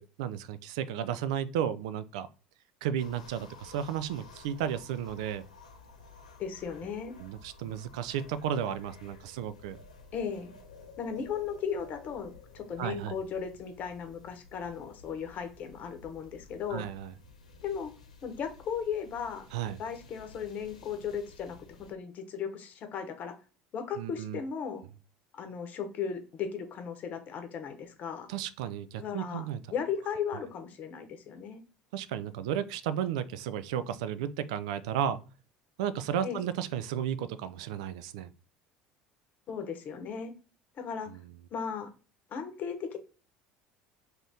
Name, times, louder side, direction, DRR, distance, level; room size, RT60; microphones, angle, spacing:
voice 1, 0.0-2.3 2.8-5.4 7.2-9.8 12.8-13.2 16.7-17.1 19.5-19.8 24.0-24.4 28.3-29.6 31.9-35.2 35.8-38.3 41.1-41.2, right 9 dB, 70° right, 0.3 m, -33 dB
sound 1, 3.0-21.9, left 3 dB, 85° left, 0.6 m, -53 dB
voice 2, 6.4-7.2 10.1-10.5 11.0-16.9 17.6-17.9 18.2-19.5 19.8-21.6 21.9-23.3 23.7-24.8 25.3-28.3 29.0-29.5 29.7-31.6 36.2-36.4 39.5-40.3 40.8-41.1 41.5-41.9 42.3-43.0, left 7 dB, 45° left, 0.9 m, -36 dB
2.8 x 2.6 x 3.4 m
figure-of-eight pair, 65°, 4 cm